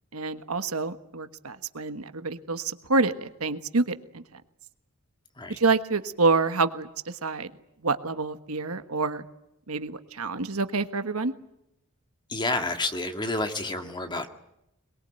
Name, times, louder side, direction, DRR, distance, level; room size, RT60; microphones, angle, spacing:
voice 1, 0.1-4.4 5.5-7.5 7.8-9.2 9.7-11.3, right 3 dB, 75° right, 10 dB, 1.4 m, -27 dB
voice 2, 12.3-14.3, left 2 dB, 20° left, 6 dB, 1.9 m, -29 dB
22.5 x 22.0 x 9.1 m, 0.84 s
head